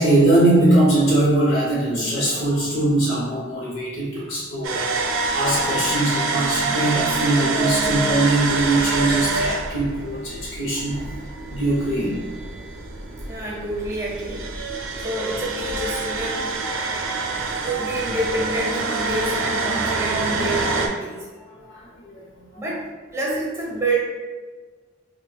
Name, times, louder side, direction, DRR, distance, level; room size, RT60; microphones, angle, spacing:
voice 1, 0.0-4.9 5.3-11.0 11.5-12.2 21.5-22.5, right 1 dB, 75° left, -5 dB, 0.7 m, -21 dB
sound 1, 4.6-20.9, right 3 dB, 80° right, 0.4 m, -26 dB
voice 2, 13.3-14.7 15.0-16.5 17.6-21.3 22.5-22.8 23.1-24.0, right 2 dB, 15° right, -4 dB, 0.8 m, -27 dB
4.4 x 2.1 x 2.2 m, 1.4 s
head